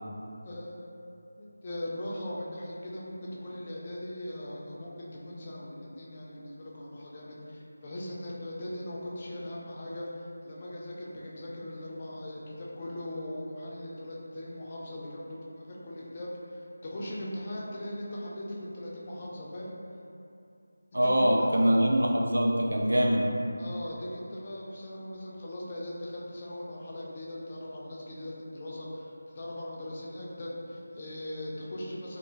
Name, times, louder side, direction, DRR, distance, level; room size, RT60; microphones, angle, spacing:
voice 1, 0.4-1.0 1.4-19.7 21.0-21.9 23.6-32.2, left 1 dB, 30° left, -5 dB, 0.4 m, -40 dB
voice 2, 20.9-23.3, equal, 85° right, -1 dB, 0.3 m, -24 dB
2.6 x 2.2 x 2.6 m, 2.6 s
figure-of-eight pair, 165°, 0 cm